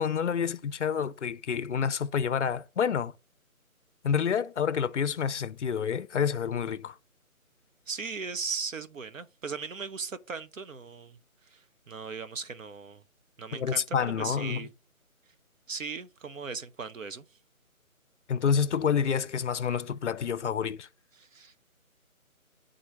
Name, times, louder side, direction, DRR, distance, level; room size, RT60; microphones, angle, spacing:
voice 1, 0.0-3.1 4.0-7.0 13.5-14.7 18.3-20.9, left 7 dB, 55° left, 0.5 m, -28 dB
voice 2, 7.9-13.0 13.4-13.8 14.2-14.7 15.7-17.2 21.1-21.7, right 5 dB, 65° right, 0.6 m, -38 dB
9.0 x 3.8 x 3.2 m
figure-of-eight pair, 165°, 43 cm